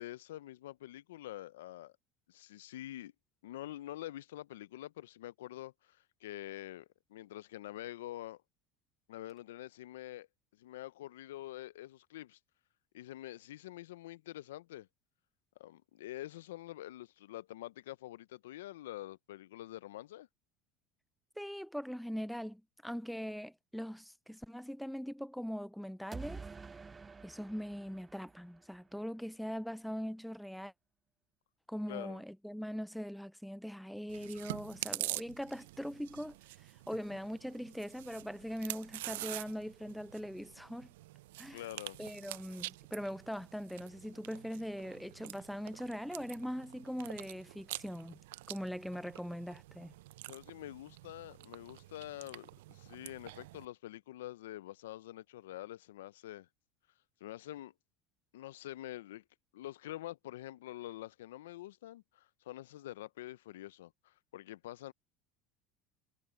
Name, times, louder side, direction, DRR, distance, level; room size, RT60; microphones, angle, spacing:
voice 1, 0.0-1.9 2.3-3.1 3.4-8.4 9.1-10.3 10.5-12.4 12.9-14.9 15.6-20.3 31.9-32.2 41.5-42.0 50.3-56.5 57.2-57.7 58.3-59.2 59.5-64.9, left 14 dB, 80° left, 0.6 m, -46 dB
voice 2, 21.4-26.5 27.2-30.7 31.7-36.4 36.9-40.9 41.4-41.6 42.0-48.2 48.5-49.9, equal, ahead, 0.3 m, -41 dB
sound 1, 26.1-29.0, right 4 dB, 25° right, 0.8 m, -48 dB
Chewing mastication, 34.1-53.7, right 18 dB, 80° right, 0.6 m, -47 dB
hypercardioid pair, 80°, 0 cm